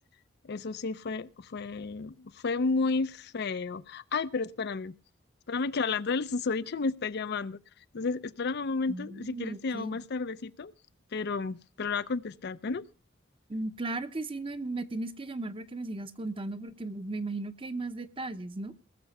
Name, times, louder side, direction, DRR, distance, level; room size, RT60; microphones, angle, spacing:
voice 1, 0.4-4.9 5.5-7.6 7.9-10.7 11.1-12.8, left 4 dB, 55° left, 0.5 m, -32 dB
voice 2, 8.9-10.0 13.5-18.7, right 2 dB, 30° right, 0.8 m, -36 dB
19.5 x 6.8 x 5.3 m
head